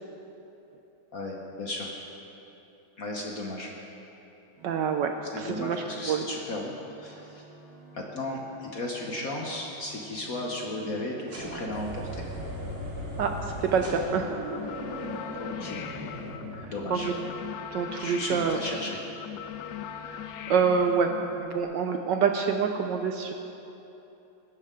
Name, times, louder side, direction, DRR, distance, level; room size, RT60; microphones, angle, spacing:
voice 1, 1.1-1.9 3.0-3.7 5.2-6.7 7.0-7.5 7.9-12.2 15.2-15.8 16.7-17.1 17.9-19.0, left 2 dB, 50° left, 0 dB, 1.3 m, -35 dB
voice 2, 4.6-5.1 5.4-6.3 13.2-14.5 16.5-17.1 17.7-18.6 20.0-21.1 21.4-23.3, right 6 dB, 70° right, 5 dB, 1.2 m, -27 dB
sound 1, 4.6-21.4, right 3 dB, 90° right, 4.5 m, -52 dB
sound 2, 11.3-17.2, equal, 35° right, 2.5 m, -37 dB
sound 3, 14.5-21.6, left 10 dB, 80° left, 0.8 m, -40 dB
21.0 x 11.0 x 3.8 m, 3.0 s
omnidirectional pair, 2.3 m